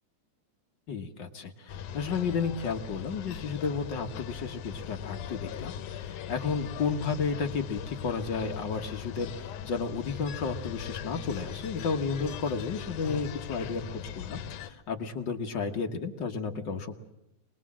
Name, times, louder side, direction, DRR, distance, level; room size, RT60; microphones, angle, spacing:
voice 1, 0.9-17.0, left 5 dB, 50° left, 4 dB, 1.6 m, -32 dB
sound 1, 1.7-14.7, left 9 dB, 85° left, 2.5 m, -40 dB
25.5 x 19.5 x 7.5 m, 0.85 s
omnidirectional pair, 3.5 m